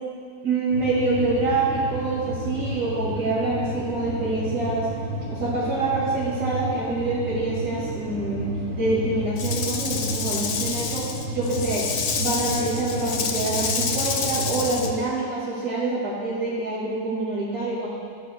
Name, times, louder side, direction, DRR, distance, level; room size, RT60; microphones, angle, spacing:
voice 1, 0.4-4.9 5.3-11.1 11.3-11.9 12.2-17.9, right 2 dB, 75° right, -8 dB, 2.5 m, -26 dB
sound 1, 0.7-14.9, right 1 dB, 60° right, 2.7 m, -32 dB
Rattle / Rattle (instrument), 9.4-14.9, left 6 dB, 70° left, 1.1 m, -28 dB
18.0 x 8.4 x 2.2 m, 2.2 s
omnidirectional pair, 1.6 m